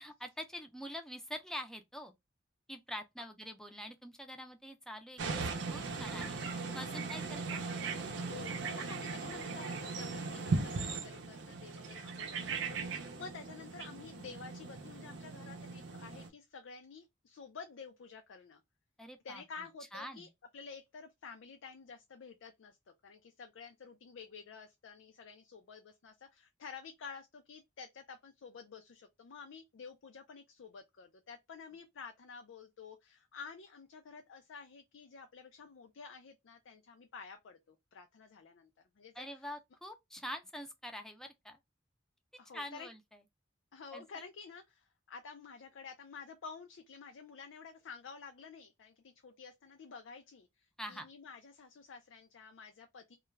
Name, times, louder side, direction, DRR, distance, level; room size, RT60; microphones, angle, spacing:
voice 1, 0.0-2.1 2.7-7.6 19.0-19.4 19.9-20.3 39.2-41.6 42.5-43.0 43.9-44.3 50.8-51.1, equal, 5° left, 0.4 m, -45 dB
sound 1, 5.2-16.3, right 4 dB, 65° right, 0.5 m, -39 dB
voice 2, 8.2-18.6 19.2-22.8 23.0-38.7 39.0-39.5 42.4-42.9 43.7-53.2, left 5 dB, 85° left, 0.4 m, -51 dB
2.3 x 2.2 x 3.1 m
head